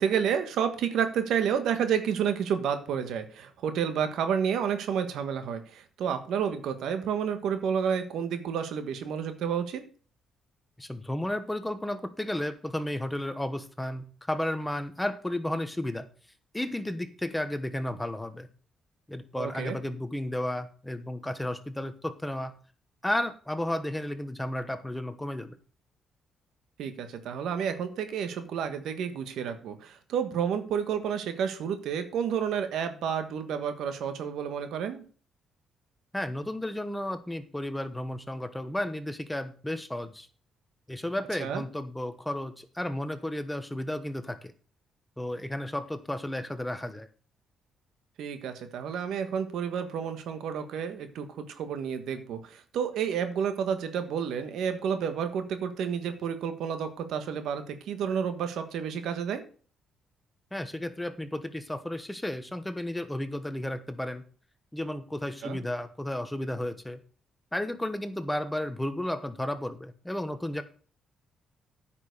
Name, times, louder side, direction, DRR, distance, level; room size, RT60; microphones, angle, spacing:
voice 1, 0.0-9.8 19.4-19.8 26.8-35.0 41.4-41.6 48.2-59.4 65.4-65.6, right 7 dB, 80° right, 9 dB, 1.4 m, -30 dB
voice 2, 10.8-16.1 16.5-18.5 19.1-22.6 23.0-25.6 36.1-40.3 40.9-44.5 45.2-47.1 60.5-64.2 64.7-67.0 67.5-70.6, left 1 dB, 10° left, 11 dB, 1.1 m, -33 dB
9.6 x 5.9 x 6.6 m, 0.42 s
cardioid pair, 90°, 0 cm